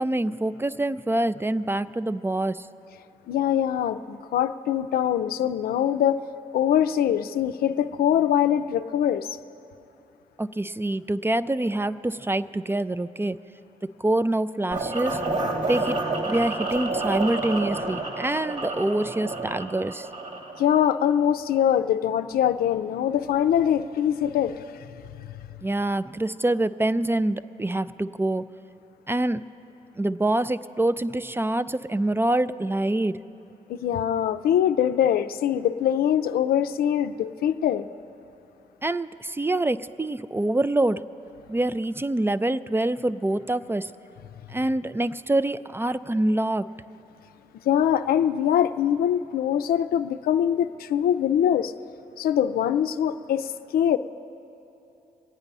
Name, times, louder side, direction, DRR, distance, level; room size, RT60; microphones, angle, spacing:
voice 1, 0.0-2.7 10.4-13.4 14.0-15.2 15.6-16.0 16.2-20.1 25.6-28.5 29.1-29.4 30.0-33.2 38.8-41.0 41.5-43.9 44.5-46.7, right 1 dB, 15° right, 14 dB, 0.4 m, -25 dB
voice 2, 3.3-6.2 6.5-9.4 20.6-24.9 33.7-37.9 47.7-51.7 52.2-54.0, left 10 dB, 80° left, 10 dB, 0.4 m, -23 dB
sound 1, 14.7-20.7, right 2 dB, 50° right, 2.0 m, -29 dB
23.5 x 8.8 x 5.4 m, 2.9 s
supercardioid pair, 55°, 15 cm